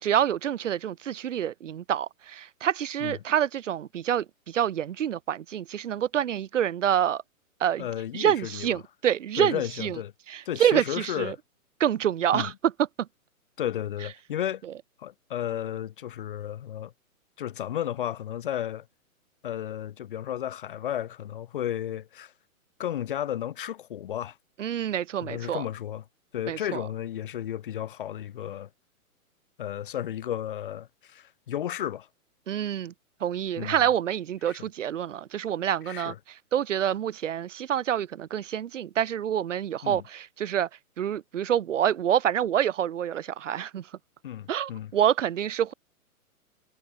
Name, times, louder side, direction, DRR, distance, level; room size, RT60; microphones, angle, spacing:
voice 1, 0.0-7.2 7.6-7.9 8.1-10.0 10.3-11.4 11.8-12.7 13.0-13.1 14.6-14.7 24.6-25.7 26.5-26.9 32.5-32.9 33.2-40.7 41.0-43.9 44.5-45.7, right 10 dB, 55° right, 0.8 m, -27 dB
voice 2, 7.8-8.7 9.4-10.1 10.4-11.4 12.3-12.5 13.6-14.6 15.0-16.9 17.4-18.8 19.4-22.3 22.8-24.4 25.2-26.0 26.3-28.7 29.6-32.1 33.6-33.7 34.5-34.6 35.9-36.1 39.8-40.0 44.2-44.9, left 11 dB, 35° left, 3.4 m, -33 dB
hypercardioid pair, 180°, 44 cm